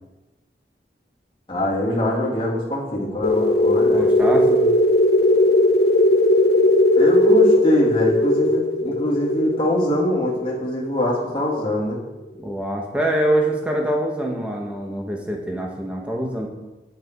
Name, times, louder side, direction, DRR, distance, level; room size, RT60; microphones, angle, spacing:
voice 1, 1.5-4.0 7.0-12.0, equal, 30° left, -5 dB, 2.8 m, -23 dB
sound 1, 3.2-11.6, left 1 dB, 60° left, 0.9 m, -18 dB
voice 2, 3.9-4.7 12.4-16.5, right 1 dB, 5° right, 0 dB, 1.3 m, -24 dB
9.0 x 8.3 x 4.6 m, 1.1 s
head